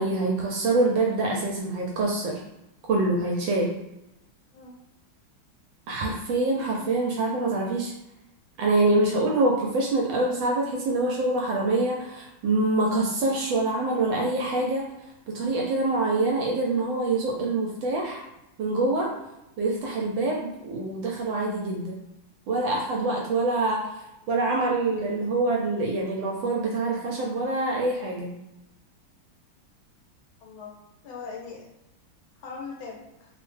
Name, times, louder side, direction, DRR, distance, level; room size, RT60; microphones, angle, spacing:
voice 1, 0.0-2.4 2.9-3.8 5.9-7.9 8.6-14.9 15.3-18.2 18.6-19.2 19.6-22.0 22.5-23.9 24.3-28.4, right 2 dB, 75° right, -1 dB, 1.3 m, -25 dB
voice 2, 30.4-30.7 31.0-31.6 32.4-33.3, left 5 dB, 90° left, -2 dB, 1.6 m, -40 dB
3.4 x 2.0 x 3.1 m, 0.90 s
omnidirectional pair, 2.2 m